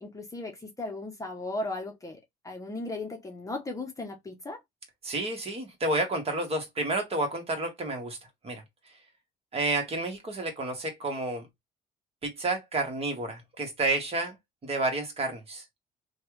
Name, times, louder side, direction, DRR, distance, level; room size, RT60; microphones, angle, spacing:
voice 1, 0.0-2.2 2.4-4.6, left 2 dB, 20° left, 0.8 m, -36 dB
voice 2, 5.0-8.2 8.4-8.6 9.5-11.5 12.2-14.3 14.6-15.6, right 2 dB, 35° right, 1.4 m, -30 dB
3.2 x 2.4 x 3.1 m
cardioid pair, 110°, 17 cm